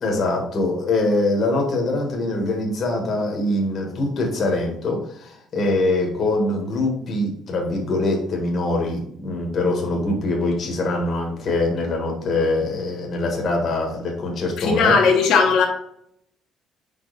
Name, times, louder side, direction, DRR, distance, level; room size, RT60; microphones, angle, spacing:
voice 1, 0.0-14.9, left 2 dB, 35° left, 0 dB, 1.4 m, -23 dB
voice 2, 14.6-15.7, left 5 dB, 65° left, 0 dB, 1.3 m, -17 dB
5.1 x 5.0 x 4.0 m, 0.72 s
cardioid pair, 175°, 0 cm